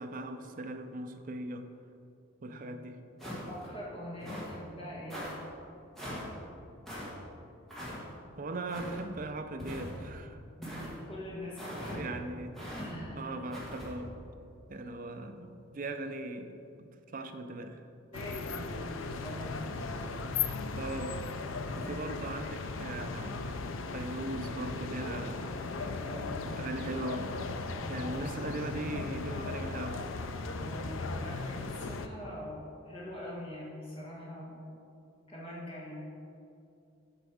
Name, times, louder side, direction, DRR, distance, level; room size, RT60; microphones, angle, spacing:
voice 1, 0.0-1.7 2.4-3.0 8.4-10.4 10.7-10.8 11.9-12.6 13.2-14.1 14.7-16.9 17.1-17.8 20.8-21.2 21.8-23.4 23.9-25.5 26.6-27.3 27.9-30.0, right 2 dB, 40° right, 7 dB, 0.5 m, -39 dB
sound 1, 3.2-3.7 4.2-4.6 5.1-5.3 6.0-6.3 6.9-7.1 7.7-8.0 8.7-9.0 9.6-10.1 10.6-10.9 11.6-12.0 12.6-12.9 13.5-13.9, equal, ahead, 1.7 m, -41 dB
voice 2, 3.4-5.2 10.6-12.3 12.8-13.3 18.1-19.7 26.0-26.6 27.7-27.9 30.5-34.7 35.3-36.1, equal, 30° left, -6 dB, 1.6 m, -43 dB
sound 2, 18.1-32.1, left 4 dB, 75° left, 0.5 m, -37 dB
8.0 x 5.2 x 4.9 m, 2.7 s
head